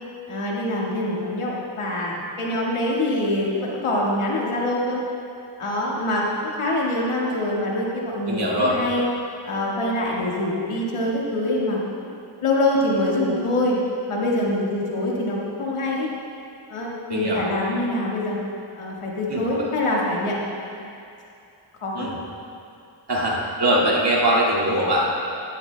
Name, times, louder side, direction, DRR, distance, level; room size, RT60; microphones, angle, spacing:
voice 1, 0.3-5.0 5.6-9.1 9.4-12.1 12.4-13.8 14.1-16.1 16.7-18.4 18.8-20.4 21.8-22.1, left 1 dB, 85° left, -4 dB, 1.7 m, -24 dB
voice 2, 8.3-8.7 17.1-17.4 19.3-19.4 21.9-22.2 23.1-25.1, right 1 dB, 50° right, -5 dB, 2.1 m, -21 dB
11.5 x 11.0 x 2.2 m, 2.6 s
cardioid pair, 65°, 50 cm